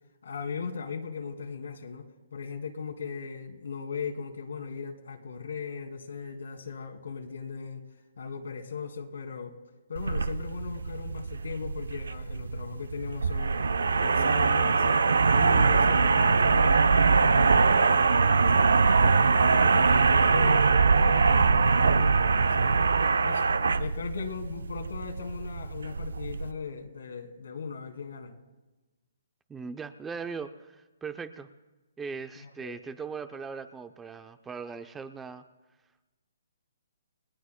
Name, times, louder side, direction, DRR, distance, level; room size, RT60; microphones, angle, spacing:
voice 1, 0.2-7.8 8.2-9.6 9.9-13.6 14.0-15.0 15.3-20.7 21.0-22.9 23.2-23.5 23.8-28.4 32.4-32.8, left 5 dB, 80° left, 4 dB, 2.3 m, -38 dB
sound 1, 10.0-26.5, right 4 dB, 90° right, 0.6 m, -23 dB
voice 2, 29.5-31.5 32.0-35.4, right 5 dB, 10° right, 10 dB, 0.6 m, -39 dB
29.5 x 19.0 x 2.2 m, 1.1 s
hypercardioid pair, 155°, 0 cm